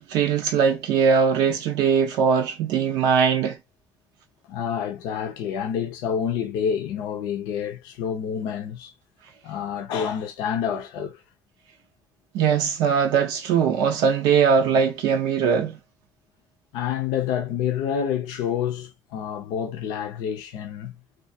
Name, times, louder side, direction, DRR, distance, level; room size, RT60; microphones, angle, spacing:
voice 1, 0.0-3.6 12.3-15.8, right 6 dB, 85° right, 0.5 m, -21 dB
voice 2, 4.5-8.9 9.4-11.2 16.7-20.9, left 8 dB, 85° left, 0.5 m, -28 dB
2.3 x 2.3 x 2.6 m
supercardioid pair, 70°, 7 cm